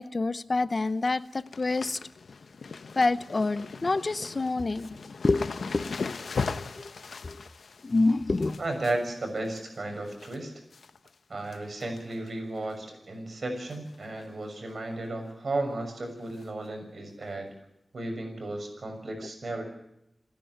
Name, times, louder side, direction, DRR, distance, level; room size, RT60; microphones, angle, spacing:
voice 1, 0.0-2.0 3.0-4.9 5.2-5.5 5.7-6.0 6.4-6.9 7.2-7.4 7.8-8.6, left 3 dB, 45° left, 15 dB, 0.7 m, -27 dB
sound 1, 0.6-0.9 1.2-10.4 10.7-11.2 11.5-12.3 12.6-12.7 13.7-14.0 14.2-14.3 14.7-14.8 16.4-16.5 17.2-17.3, left 4 dB, 85° left, 0.9 m, -39 dB
voice 2, 8.6-10.5 11.3-17.5 17.9-19.7, right 2 dB, 65° right, 4 dB, 6.5 m, -34 dB
27.5 x 10.5 x 9.4 m, 0.85 s
wide cardioid pair, 75°, 0 cm